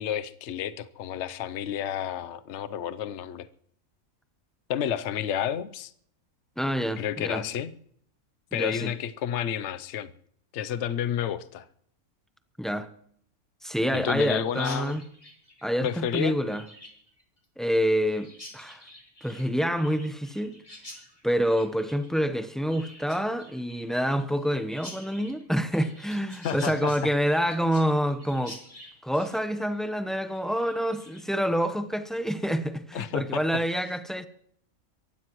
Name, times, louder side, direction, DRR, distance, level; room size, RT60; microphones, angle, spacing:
voice 1, 0.0-3.5 4.7-5.9 7.0-7.7 8.5-10.1 10.5-11.6 13.9-14.9 15.8-16.4 26.4-27.1 32.9-33.4, left 9 dB, 55° left, 1.0 m, -30 dB
voice 2, 6.6-7.5 8.5-8.9 12.6-12.9 13.6-15.0 15.6-16.6 17.6-18.8 19.2-20.6 21.2-28.6 29.0-34.2, equal, ahead, 0.7 m, -27 dB
Chirp tweet, 14.6-31.4, left 1 dB, 20° left, 3.1 m, -49 dB
23.5 x 15.5 x 3.1 m
omnidirectional pair, 1.5 m